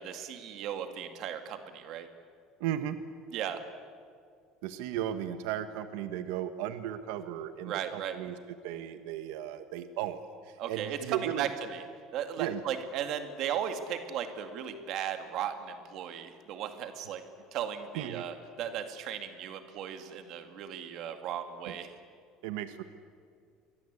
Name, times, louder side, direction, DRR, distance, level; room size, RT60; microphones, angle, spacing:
voice 1, 0.0-2.1 3.3-3.6 7.6-8.2 10.6-11.8 12.1-17.2 17.5-21.9, right 9 dB, 45° right, 7 dB, 2.2 m, -36 dB
voice 2, 2.6-3.0 4.6-8.4 8.6-11.5 12.4-12.6 17.9-18.2 21.7-21.8 22.4-22.8, right 11 dB, 85° right, 9 dB, 1.3 m, -35 dB
29.0 x 23.5 x 8.3 m, 2.2 s
cardioid pair, 180°, 0 cm